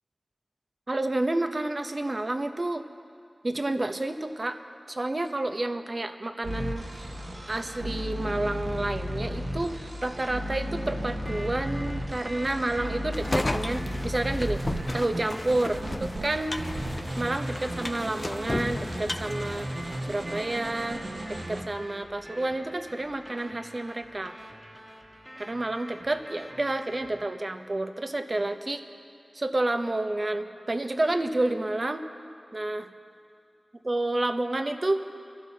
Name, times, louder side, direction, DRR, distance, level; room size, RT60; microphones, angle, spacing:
voice 1, 0.9-2.8 3.4-4.6 4.9-7.1 7.4-14.6 14.9-16.6 17.2-21.0 21.3-24.3 25.4-28.8 29.3-32.0 32.5-32.9 33.8-35.0, right 2 dB, 45° right, 7 dB, 0.8 m, -30 dB
sound 1, 6.4-16.2 16.6-21.6, equal, 80° right, 1.3 m, -34 dB
sound 2, 11.3-27.2, equal, 15° right, 1.6 m, -46 dB
sound 3, 13.1-20.3, left 2 dB, 40° left, 0.3 m, -34 dB
26.0 x 11.5 x 2.8 m, 2.4 s
wide cardioid pair, 50°, 0 cm